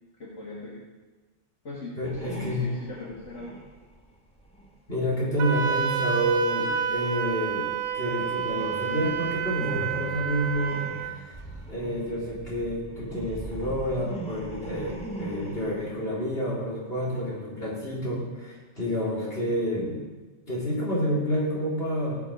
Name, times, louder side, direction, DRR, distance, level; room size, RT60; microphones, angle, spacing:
voice 1, 0.2-0.8 1.6-3.6, left 2 dB, 80° left, -4 dB, 1.9 m, -39 dB
voice 2, 2.0-2.7 4.9-11.4 11.7-20.0 20.5-22.2, equal, 55° left, -6 dB, 4.1 m, -29 dB
sound 1, 2.0-5.9 6.2-15.9, right 2 dB, 5° left, 1.7 m, -41 dB
Wind instrument woodwind instrument, 5.4-11.2, right 7 dB, 85° right, 1.1 m, -29 dB
18.5 x 7.2 x 5.2 m, 1.3 s
omnidirectional pair, 1.2 m